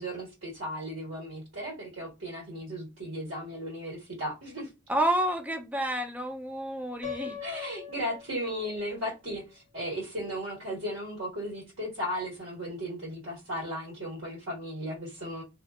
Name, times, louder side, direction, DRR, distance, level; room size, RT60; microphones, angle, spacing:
voice 1, 0.0-4.7 7.4-15.4, equal, 85° right, 1.4 m, -36 dB
voice 2, 4.9-7.4, right 1 dB, 10° right, 0.4 m, -29 dB
Piano, 7.0-9.0, left 8 dB, 40° left, 0.6 m, -41 dB
2.6 x 2.3 x 2.3 m
head